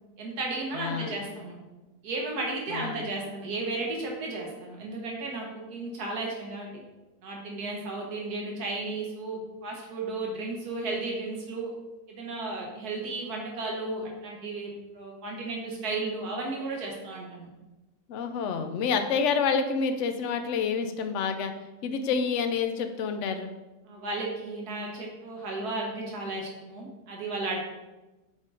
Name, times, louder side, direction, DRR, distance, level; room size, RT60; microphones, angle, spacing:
voice 1, 0.2-1.6 2.0-6.7 7.2-11.7 12.1-17.5 23.8-27.6, right 2 dB, 75° right, -1 dB, 1.6 m, -34 dB
voice 2, 0.7-1.2 2.7-3.1 18.1-21.5 21.8-23.5, left 5 dB, 65° left, 7 dB, 0.8 m, -28 dB
7.3 x 3.7 x 3.8 m, 1.1 s
omnidirectional pair, 1.7 m